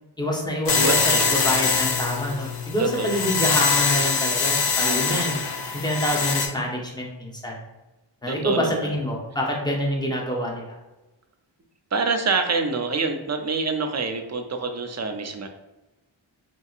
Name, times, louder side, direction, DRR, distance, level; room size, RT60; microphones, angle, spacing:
voice 1, 0.2-1.0 1.2-5.4 5.7-7.6 8.2-10.8, equal, 10° left, -1 dB, 0.7 m, -26 dB
sound 1, 0.7-6.5, left 5 dB, 60° left, 0.5 m, -23 dB
voice 2, 0.7-1.4 2.8-3.2 4.8-5.2 8.3-9.0 11.9-15.5, right 4 dB, 35° right, 6 dB, 0.4 m, -26 dB
2.9 x 2.7 x 2.4 m, 1.1 s
wide cardioid pair, 50°, 47 cm